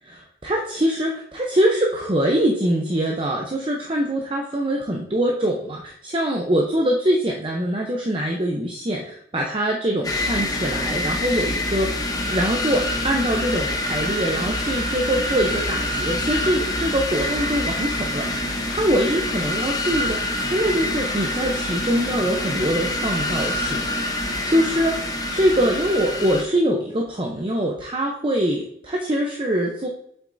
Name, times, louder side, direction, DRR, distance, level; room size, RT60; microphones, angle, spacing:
voice 1, 0.0-25.0 25.3-29.9, equal, 30° right, 0 dB, 0.7 m, -23 dB
sound 1, 10.0-26.4, left 1 dB, 20° left, 0.8 m, -26 dB
7.9 x 7.0 x 2.7 m, 0.70 s
head